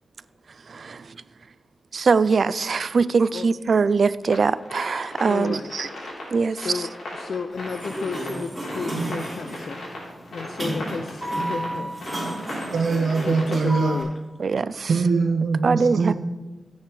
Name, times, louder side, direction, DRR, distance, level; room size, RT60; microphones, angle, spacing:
voice 1, 0.7-1.1 1.9-5.9 6.3-6.8 14.4-14.9 15.6-16.1, right 5 dB, 60° right, 16 dB, 0.4 m, -22 dB
sound 1, 4.2-14.0, left 1 dB, 80° left, 3.5 m, -37 dB
voice 2, 5.3-5.7 6.6-9.8 10.3-11.9 13.2-14.1, left 5 dB, 65° left, 10 dB, 0.4 m, -32 dB
Sliding door, 7.5-14.0, right 1 dB, 10° right, 4.1 m, -32 dB
voice 3, 12.7-14.0 14.9-16.1, right 4 dB, 80° right, 1 dB, 1.1 m, -22 dB
13.5 x 8.9 x 3.2 m, 1.1 s
wide cardioid pair, 90°, 0 cm